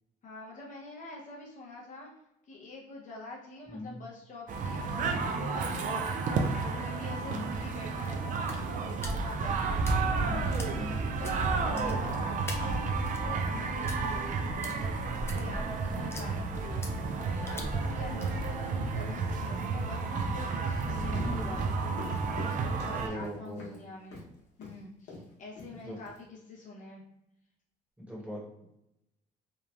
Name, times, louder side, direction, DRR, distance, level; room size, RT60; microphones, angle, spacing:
voice 1, 0.2-2.1 2.4-16.9 17.2-24.2 24.6-27.0, left 3 dB, 50° left, -2 dB, 0.7 m, -46 dB
sound 1, 4.5-23.1, right 4 dB, 50° right, 0.4 m, -31 dB
sound 2, 8.0-19.5, left 1 dB, 15° left, 0.4 m, -46 dB
voice 2, 10.2-11.0 11.7-12.0 21.2-21.5 23.0-23.7 25.8-26.0 28.0-28.7, equal, 5° right, -5 dB, 1.0 m, -40 dB
sound 3, 21.1-23.8 24.1-24.3 24.6-24.8 25.1-25.3 25.6-26.2, left 3 dB, 80° left, 0.9 m, -45 dB
3.0 x 2.1 x 2.4 m, 0.84 s
cardioid pair, 110°, 17 cm